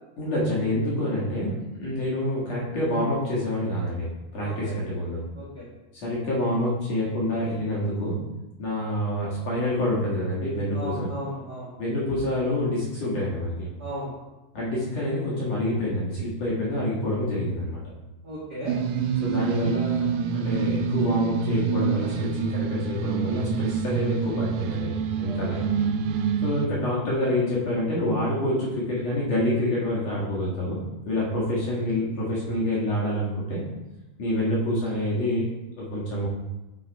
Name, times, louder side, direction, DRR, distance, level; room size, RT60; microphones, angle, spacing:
voice 1, 0.2-4.1 4.3-5.2 5.9-8.2 8.6-11.1 11.8-13.7 14.5-17.8 19.2-24.9 25.2-25.6 26.4-30.8 31.1-33.6 34.2-35.4 35.8-36.3, left 1 dB, 55° left, -6 dB, 2.3 m, -27 dB
voice 2, 4.4-4.7 5.4-5.6 10.7-11.7 13.8-14.1 18.2-18.7 25.2-25.6, equal, 50° right, -7 dB, 1.2 m, -35 dB
sound 1, 18.7-26.7, right 6 dB, 80° right, 2.2 m, -26 dB
9.2 x 4.3 x 4.5 m, 1.1 s
omnidirectional pair, 4.5 m